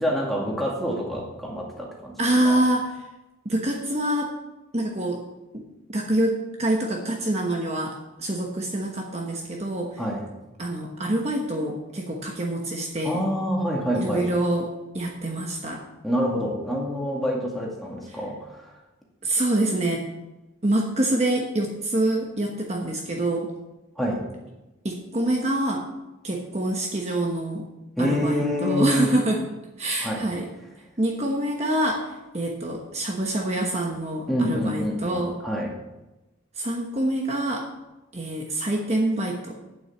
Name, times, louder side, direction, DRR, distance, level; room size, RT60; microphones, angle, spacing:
voice 1, 0.0-2.2 2.4-2.6 10.0-10.3 13.0-14.3 16.0-18.7 24.0-24.2 28.0-29.1 30.0-30.2 34.3-35.7, equal, ahead, -3 dB, 2.1 m, -27 dB
voice 2, 2.2-2.9 3.4-4.3 4.7-5.2 5.5-10.0 10.6-13.2 14.0-15.8 19.2-20.1 20.6-23.5 24.8-25.8 26.2-27.6 28.0-29.4 29.8-30.5 31.0-35.4 36.6-37.7 38.1-39.5, right 1 dB, 35° right, 1 dB, 1.1 m, -26 dB
8.9 x 7.9 x 7.1 m, 1.0 s
head